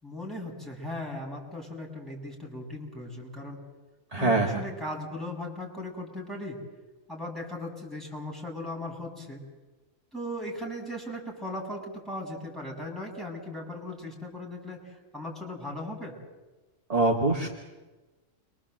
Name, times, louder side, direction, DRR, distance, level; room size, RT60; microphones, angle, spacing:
voice 1, 0.0-3.6 4.2-6.6 7.1-9.4 10.1-16.1, left 1 dB, ahead, -2 dB, 7.0 m, -38 dB
voice 2, 4.1-4.6 16.9-17.5, right 2 dB, 30° right, -1 dB, 2.3 m, -24 dB
29.5 x 24.5 x 7.8 m, 1.2 s
omnidirectional pair, 1.3 m